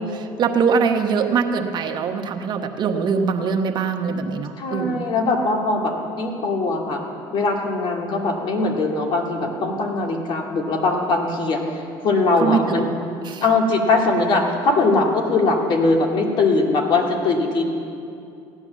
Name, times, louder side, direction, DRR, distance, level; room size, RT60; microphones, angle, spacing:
voice 1, 0.0-5.1 12.4-12.9 13.2-13.4, right 5 dB, 50° right, 5 dB, 1.2 m, -22 dB
voice 2, 4.6-7.0 7.3-12.9 13.4-17.6, left 3 dB, 55° left, 1 dB, 2.3 m, -21 dB
16.0 x 9.6 x 7.5 m, 2.6 s
supercardioid pair, 90°, 10 cm